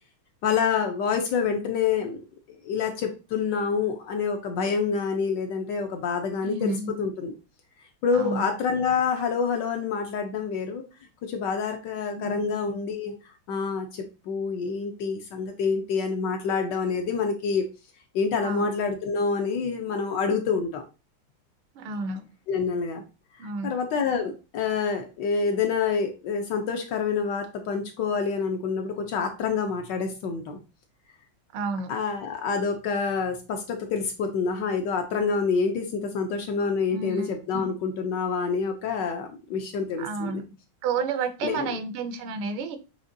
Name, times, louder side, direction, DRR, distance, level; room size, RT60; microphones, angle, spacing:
voice 1, 0.4-2.2 2.6-6.7 7.0-7.3 8.0-10.8 11.2-13.1 13.5-17.7 18.1-20.8 22.5-23.0 23.6-30.6 31.9-40.4 41.4-41.8, left 5 dB, 70° left, 1.1 m, -27 dB
voice 2, 6.4-6.9 8.1-8.4 12.2-12.6 18.4-18.7 21.7-22.3 23.4-23.7 31.5-31.9 36.9-37.7 40.0-40.4 40.8-42.8, right 4 dB, 80° right, 1.5 m, -31 dB
6.4 x 2.9 x 2.6 m
omnidirectional pair, 2.3 m